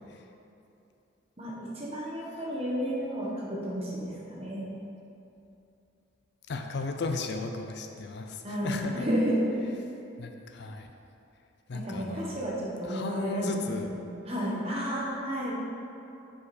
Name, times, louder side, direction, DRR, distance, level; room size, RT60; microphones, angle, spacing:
voice 1, 1.4-4.7 8.4-9.5 11.7-13.6 13.9-15.5, equal, 30° right, -5 dB, 1.2 m, -32 dB
voice 2, 6.5-9.1 10.2-10.9 11.7-12.4 12.8-13.9, left 4 dB, 55° left, 5 dB, 0.4 m, -35 dB
7.0 x 5.1 x 4.2 m, 2.8 s
head